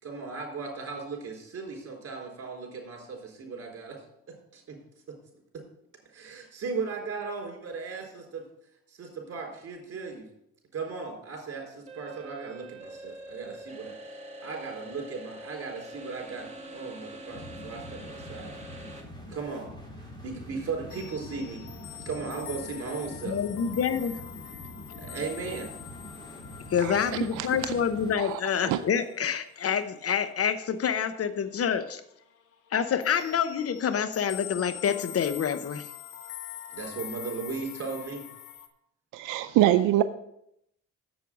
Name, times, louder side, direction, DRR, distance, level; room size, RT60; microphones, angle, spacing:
voice 1, 0.0-4.0 4.5-4.8 6.1-8.4 8.9-10.2 10.7-18.5 19.3-19.7 20.2-21.6 22.1-23.4 25.0-25.7 27.0-27.1 36.7-38.2, right 4 dB, 50° right, 0 dB, 4.0 m, -37 dB
sound 1, 11.9-19.0, right 1 dB, 20° right, 1.8 m, -44 dB
sound 2, 17.3-28.1, left 1 dB, 15° left, 3.8 m, -45 dB
sound 3, 20.9-31.3 31.6-31.9 32.2-38.7, left 11 dB, 85° left, 1.1 m, -44 dB
voice 2, 23.2-24.1 26.7-32.0 32.7-35.9, left 7 dB, 50° left, 11 dB, 0.8 m, -27 dB
voice 3, 39.1-40.0, right 13 dB, 90° right, 10 dB, 0.5 m, -23 dB
7.7 x 7.1 x 6.1 m, 0.77 s
cardioid pair, 90°, 30 cm